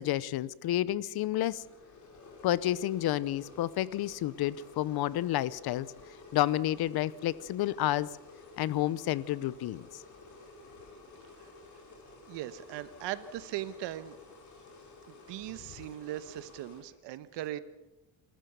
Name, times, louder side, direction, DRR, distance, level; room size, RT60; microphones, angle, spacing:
voice 1, 0.0-1.6 2.4-5.9 6.3-8.1 8.6-9.9, left 14 dB, 60° left, 20 dB, 0.9 m, -30 dB
sound 1, 1.4-16.8, left 3 dB, 40° left, 6.0 m, -52 dB
voice 2, 12.3-14.2 15.1-17.6, right 14 dB, 75° right, 13 dB, 1.3 m, -39 dB
27.0 x 14.0 x 6.9 m, 0.96 s
cardioid pair, 120°, 44 cm